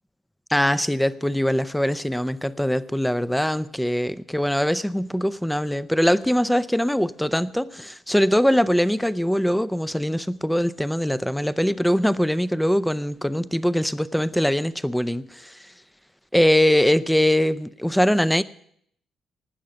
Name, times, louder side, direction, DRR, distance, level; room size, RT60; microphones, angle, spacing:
voice 1, 0.5-15.7 16.3-18.4, equal, 5° left, 0.6 m, -22 dB
19.0 x 6.5 x 7.0 m
cardioid pair, 90°, 0 cm